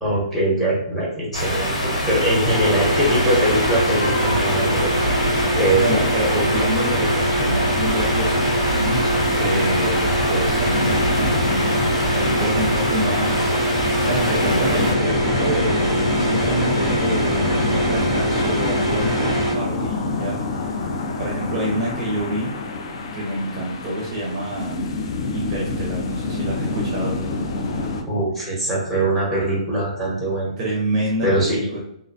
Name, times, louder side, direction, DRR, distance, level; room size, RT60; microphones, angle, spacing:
voice 1, 0.0-4.9 5.6-6.0 28.1-30.5 31.2-31.6, right 1 dB, 5° left, -6 dB, 0.8 m, -22 dB
sound 1, 1.3-14.9, equal, 85° left, 1.5 m, -25 dB
sound 2, 2.4-19.5, equal, 70° left, 1.2 m, -23 dB
voice 2, 5.8-11.7 12.1-20.8 21.2-22.5 23.1-24.9 25.3-27.1 30.6-31.8, right 1 dB, 25° right, -4 dB, 0.5 m, -27 dB
sound 3, 10.6-28.0, left 3 dB, 50° left, 0.3 m, -27 dB
2.4 x 2.1 x 2.6 m, 0.75 s
hypercardioid pair, 160°, 4 cm